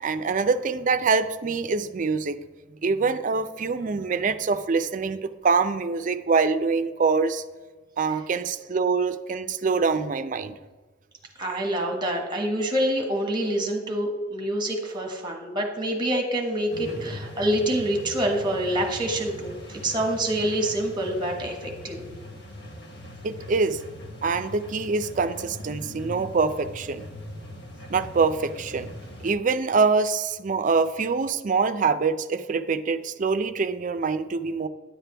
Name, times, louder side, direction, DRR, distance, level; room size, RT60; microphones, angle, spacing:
voice 1, 0.0-2.4 2.8-7.4 8.0-10.5 23.2-23.8 24.2-27.1 27.9-28.9 29.2-34.7, right 4 dB, 45° right, 11 dB, 0.5 m, -24 dB
voice 2, 11.4-22.0, right 1 dB, 25° right, 2 dB, 1.4 m, -26 dB
sound 1, 16.7-29.3, left 1 dB, 65° left, 1.3 m, -41 dB
10.0 x 7.5 x 3.4 m, 1.3 s
head